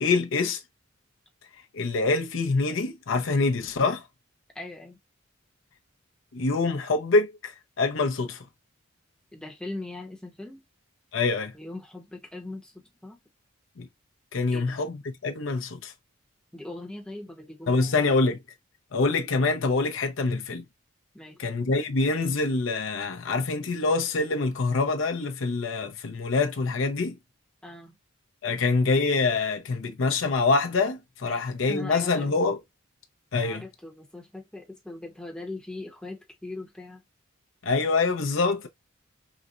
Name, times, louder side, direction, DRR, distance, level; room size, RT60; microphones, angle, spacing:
voice 1, 0.0-0.6 1.7-4.0 6.3-8.4 11.1-11.5 13.8-13.9 14.3-15.9 17.7-18.4 18.9-20.6 21.4-27.2 28.4-32.6 33.3-33.6 37.6-38.7, left 3 dB, 65° left, 0.6 m, -25 dB
voice 2, 4.5-5.0 9.3-10.6 11.5-13.2 14.5-14.8 16.5-18.0 21.1-21.4 27.6-28.0 31.3-32.3 33.4-37.0, left 2 dB, 5° left, 0.8 m, -40 dB
4.0 x 2.1 x 2.4 m
head